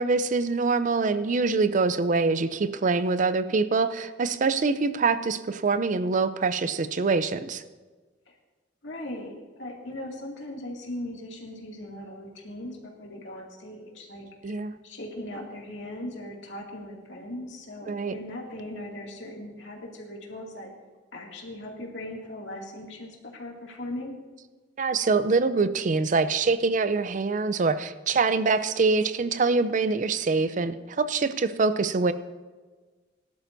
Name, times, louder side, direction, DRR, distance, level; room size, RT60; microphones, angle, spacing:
voice 1, 0.0-7.6 14.4-14.7 17.9-18.1 24.8-32.1, right 4 dB, 45° right, 13 dB, 0.5 m, -24 dB
voice 2, 8.8-20.7 21.1-24.2, left 1 dB, 75° left, -1 dB, 2.4 m, -39 dB
18.0 x 11.5 x 2.7 m, 1.3 s
head